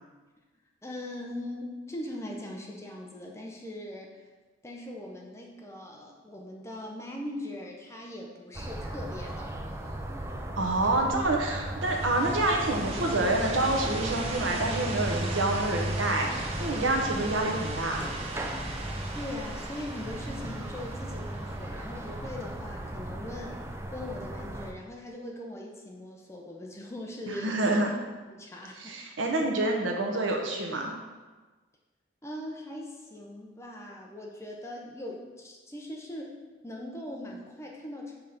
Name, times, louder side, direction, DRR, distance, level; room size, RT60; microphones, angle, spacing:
voice 1, 0.8-4.1 4.6-9.8 19.1-23.6 23.9-27.9 28.3-28.9 29.2-29.4 32.2-36.4 36.6-38.2, left 1 dB, 15° left, -1 dB, 0.8 m, -40 dB
sound 1, 8.5-24.7, right 1 dB, 15° right, 0.4 m, -36 dB
voice 2, 10.6-18.1 27.3-27.9 28.8-30.9, right 2 dB, 90° right, 1 dB, 1.0 m, -27 dB
sound 2, 11.8-22.5, right 2 dB, 30° right, 0.8 m, -38 dB
5.5 x 4.0 x 5.8 m, 1.3 s
head